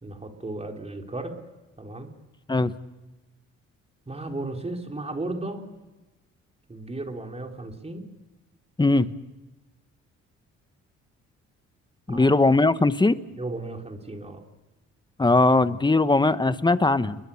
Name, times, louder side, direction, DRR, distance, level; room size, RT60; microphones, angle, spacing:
voice 1, 0.0-1.4 1.8-2.1 4.1-5.7 6.7-8.1 12.1-12.3 13.4-14.4, right 2 dB, 20° right, 3 dB, 4.0 m, -35 dB
voice 2, 12.1-13.2 15.2-17.2, left 2 dB, 15° left, 13 dB, 1.2 m, -20 dB
29.5 x 22.0 x 7.2 m, 1.1 s
cardioid pair, 90°, 30 cm